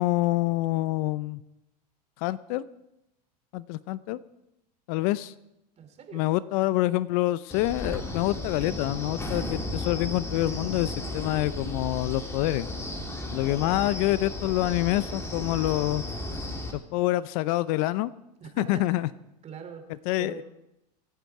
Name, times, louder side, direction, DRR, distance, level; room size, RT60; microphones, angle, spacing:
voice 1, 0.0-1.4 2.2-2.6 3.5-4.2 4.9-5.3 6.1-12.7 13.3-16.0 16.7-18.1 18.6-19.1 20.1-20.4, left 17 dB, 60° left, 17 dB, 0.6 m, -26 dB
voice 2, 5.8-6.3 13.5-13.9 18.4-19.1 19.4-20.4, right 7 dB, 30° right, 6 dB, 3.2 m, -43 dB
Wind, 7.5-16.7, left 1 dB, 10° left, 2.8 m, -34 dB
26.0 x 9.3 x 4.8 m, 0.88 s
supercardioid pair, 120°, 21 cm